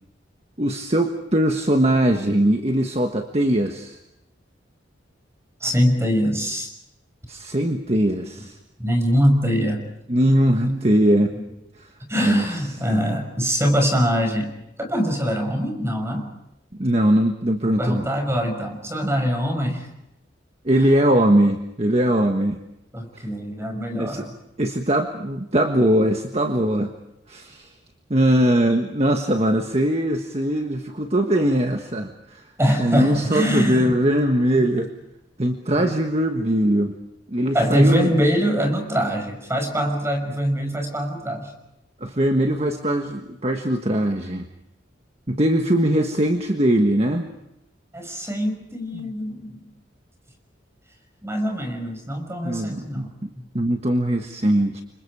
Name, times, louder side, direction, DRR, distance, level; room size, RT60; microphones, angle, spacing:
voice 1, 0.6-4.0 7.3-8.6 10.1-11.3 11.8-11.9 12.2-12.5 12.9-13.0 16.8-18.0 20.6-22.6 23.9-24.2 24.6-26.9 27.3-27.7 28.1-32.4 32.8-34.9 35.4-37.0 37.3-38.3 42.0-44.5 45.3-47.3 48.9-49.1 52.4-53.3 53.5-54.8, right 1 dB, 35° right, 4 dB, 1.5 m, -21 dB
voice 2, 5.6-6.7 8.8-9.8 10.6-10.8 12.1-14.5 14.8-16.3 17.8-19.9 22.9-24.3 32.6-33.9 34.6-34.7 35.8-35.9 37.5-41.5 47.9-49.7 51.2-53.4 54.0-54.2, equal, 15° right, 4 dB, 5.8 m, -23 dB
30.0 x 26.0 x 4.9 m, 0.86 s
head